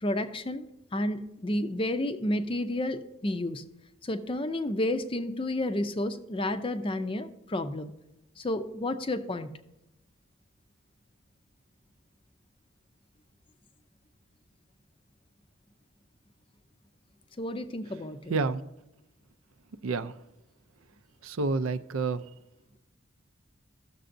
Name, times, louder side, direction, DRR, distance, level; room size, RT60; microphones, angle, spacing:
voice 1, 0.0-3.6 4.0-7.9 8.4-9.5 17.4-18.3, left 1 dB, 25° left, 9 dB, 0.5 m, -31 dB
voice 2, 18.3-18.6 19.8-20.1 21.2-22.2, right 4 dB, 80° right, 12 dB, 0.5 m, -29 dB
15.0 x 6.7 x 2.6 m, 0.91 s
head